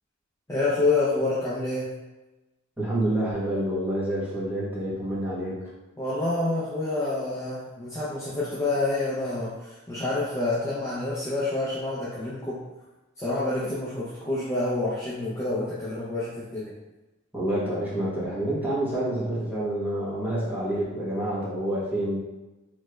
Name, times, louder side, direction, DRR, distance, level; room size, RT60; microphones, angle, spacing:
voice 1, 0.5-1.9 6.0-12.6 13.2-16.7, left 2 dB, 15° left, -9 dB, 0.5 m, -28 dB
voice 2, 2.8-5.5 17.3-22.2, right 1 dB, 10° right, -8 dB, 1.0 m, -28 dB
3.2 x 3.0 x 2.2 m, 1.1 s
head